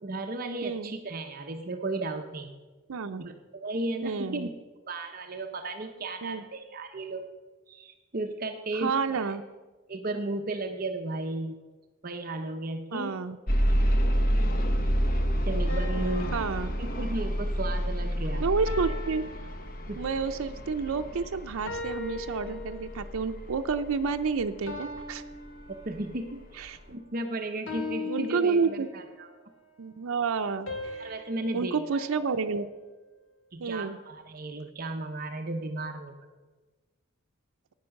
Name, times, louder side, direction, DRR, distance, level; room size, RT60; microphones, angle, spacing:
voice 1, 0.0-2.5 3.2-4.5 4.9-7.3 7.7-9.3 9.9-11.6 12.0-13.2 15.5-16.4 16.8-18.4 19.9-20.0 25.7-29.3 31.0-32.1 33.5-36.1, right 2 dB, 45° right, 5 dB, 0.7 m, -35 dB
voice 2, 0.6-0.9 2.9-3.2 4.0-4.5 6.2-6.4 8.8-9.4 12.9-13.4 16.3-16.7 18.4-19.3 20.0-25.2 26.6-26.8 28.1-28.9 29.8-31.1 31.5-32.7 33.6-34.0, right 5 dB, 85° right, 7 dB, 0.5 m, -30 dB
sound 1, 13.5-25.4 26.1-26.2 26.7-26.8, equal, 40° left, 1.0 m, -29 dB
sound 2, 15.7-17.6 18.7-20.3 21.7-23.2 24.7-26.3 27.7-29.3 30.7-33.0, left 3 dB, 70° left, 2.0 m, -40 dB
10.5 x 9.5 x 6.4 m, 1.3 s
head